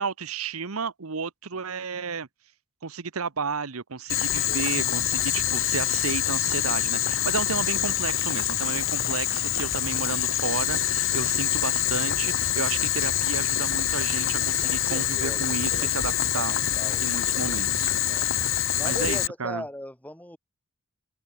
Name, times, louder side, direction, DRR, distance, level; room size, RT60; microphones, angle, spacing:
voice 1, 0.0-2.3 2.8-16.5 17.0-17.9 18.2-18.4 18.8-19.6, right 5 dB, 85° right, 1.1 m, -32 dB
Boiling, 4.1-19.3, left 11 dB, 65° left, 2.8 m, -25 dB
voice 2, 14.6-17.4 18.0-18.3 18.7-20.4, left 1 dB, 5° left, 3.8 m, -40 dB
open air
head